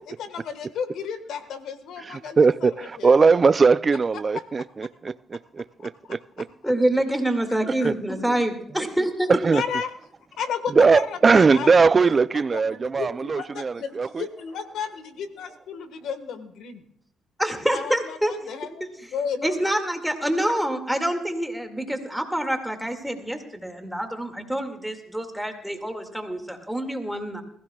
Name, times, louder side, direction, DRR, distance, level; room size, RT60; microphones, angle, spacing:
voice 1, 0.2-3.2 5.8-6.1 7.5-7.9 9.5-9.9 10.4-11.7 12.5-16.9 17.7-19.6 20.4-20.5, left 7 dB, 80° left, 1.5 m, -33 dB
voice 2, 2.0-6.5 7.7-7.9 9.3-9.6 10.7-14.2, right 4 dB, 35° right, 0.4 m, -20 dB
voice 3, 6.6-9.3 17.4-18.3 19.4-27.4, right 1 dB, ahead, 2.1 m, -26 dB
21.0 x 15.5 x 2.4 m
cardioid pair, 90°, 0 cm